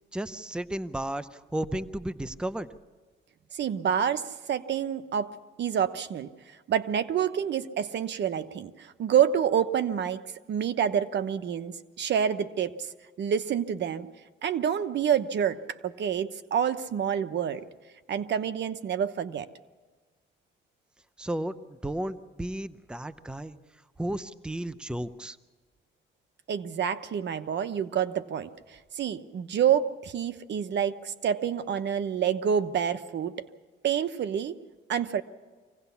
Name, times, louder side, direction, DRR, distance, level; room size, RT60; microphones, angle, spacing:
voice 1, 0.1-2.7 21.2-23.6 24.0-25.4, right 1 dB, 5° right, 13 dB, 0.8 m, -33 dB
voice 2, 3.5-5.3 5.6-6.3 6.7-10.2 10.5-12.9 13.2-14.1 14.4-17.6 18.1-19.5 26.5-33.5 33.8-34.5 34.9-35.2, right 8 dB, 65° right, 12 dB, 1.0 m, -28 dB
24.5 x 17.0 x 7.1 m, 1.4 s
cardioid pair, 90°, 20 cm